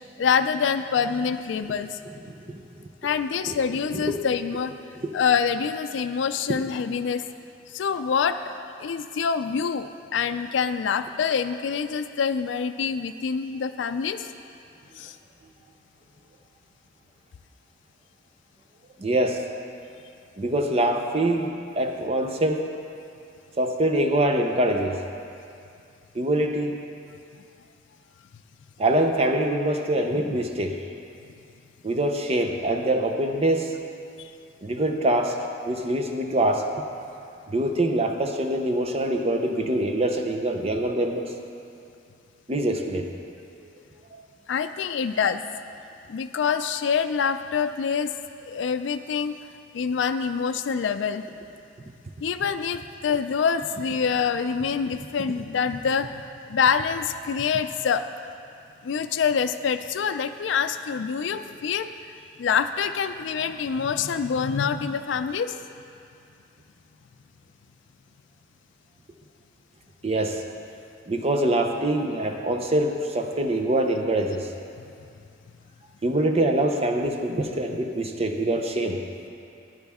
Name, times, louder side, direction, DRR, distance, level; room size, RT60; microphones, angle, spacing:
voice 1, 0.2-2.0 3.0-4.7 5.1-7.2 7.7-8.4 8.8-14.3 15.0-15.2 34.2-34.3 44.5-45.4 46.1-48.1 48.4-49.4 49.7-51.2 52.2-56.2 56.5-58.0 58.8-61.9 62.4-65.6, left 6 dB, 70° left, 8 dB, 0.4 m, -26 dB
voice 2, 2.3-2.9 3.5-3.6 4.1-4.2 5.0-5.2 19.0-19.5 20.4-22.6 23.6-25.0 26.1-26.8 28.8-30.8 31.8-33.8 34.6-35.4 35.7-36.7 37.5-41.3 42.5-43.1 43.6-43.7 70.0-70.4 71.1-74.5 76.0-79.0, right 1 dB, 35° right, 4 dB, 0.6 m, -24 dB
14.5 x 10.5 x 3.6 m, 2.5 s
head